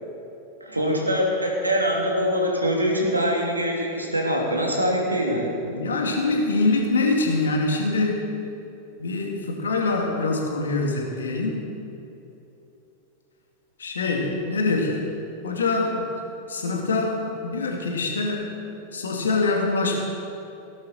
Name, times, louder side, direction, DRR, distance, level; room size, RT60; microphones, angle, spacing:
voice 1, 0.6-5.5, equal, 85° right, -1 dB, 2.7 m, -23 dB
voice 2, 5.7-8.3 9.0-11.6 13.8-15.0 15.4-16.1 16.5-18.6 18.9-20.0, left 3 dB, 70° left, 1 dB, 2.4 m, -24 dB
18.0 x 11.0 x 4.6 m, 2.9 s
figure-of-eight pair, 90°, 0 cm